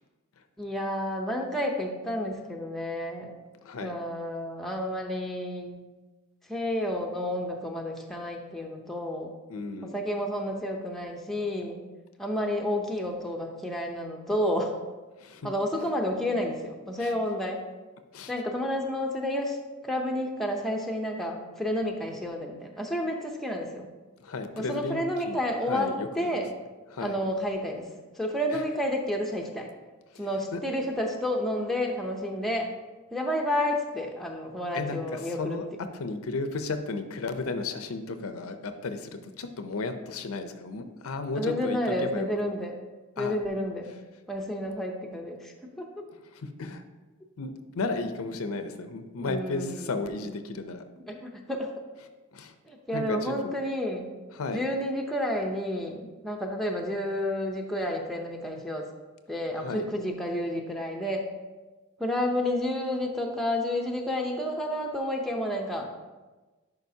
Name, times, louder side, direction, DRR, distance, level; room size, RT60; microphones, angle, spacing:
voice 1, 0.6-3.3 3.8-5.8 6.5-9.3 9.9-11.8 12.2-14.7 15.4-17.6 18.3-19.6 19.8-23.9 24.6-26.5 27.0-27.9 28.2-29.7 30.2-32.7 33.1-35.6 41.4-42.8 43.2-43.9 44.3-46.0 49.2-50.0 51.1-51.7 52.7-54.1 54.5-58.9 59.3-61.3 62.0-65.9, left 1 dB, ahead, 0 dB, 0.6 m, -30 dB
voice 2, 3.6-4.0 9.5-9.9 15.2-15.5 17.0-17.1 18.1-18.3 24.2-25.4 25.7-26.4 26.9-27.2 28.5-28.6 30.1-30.6 34.7-35.7 35.9-42.5 43.2-43.4 46.3-46.8 47.4-50.8 52.3-52.5 52.9-53.5 54.4-54.6 59.6-59.8, left 3 dB, 80° left, 8 dB, 0.6 m, -34 dB
10.5 x 4.9 x 2.8 m, 1.2 s
head